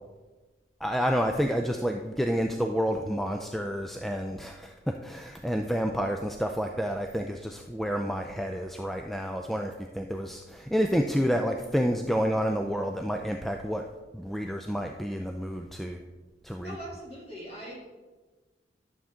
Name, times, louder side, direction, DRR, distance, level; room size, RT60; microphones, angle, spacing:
voice 1, 0.8-13.8 14.1-16.0 16.4-16.7, equal, ahead, 3 dB, 0.4 m, -29 dB
voice 2, 16.6-17.9, right 1 dB, 35° left, -3 dB, 2.7 m, -41 dB
12.0 x 7.1 x 3.7 m, 1.2 s
head